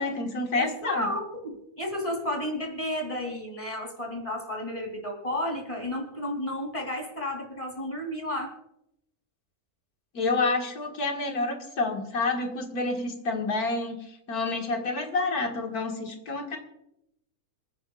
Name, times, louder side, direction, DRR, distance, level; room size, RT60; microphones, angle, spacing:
voice 1, 0.0-1.1 10.1-14.0 14.3-16.6, left 3 dB, 80° left, 2 dB, 2.3 m, -28 dB
voice 2, 0.5-8.5, left 1 dB, 20° left, 2 dB, 3.2 m, -32 dB
27.5 x 10.0 x 2.4 m, 0.81 s
omnidirectional pair, 1.6 m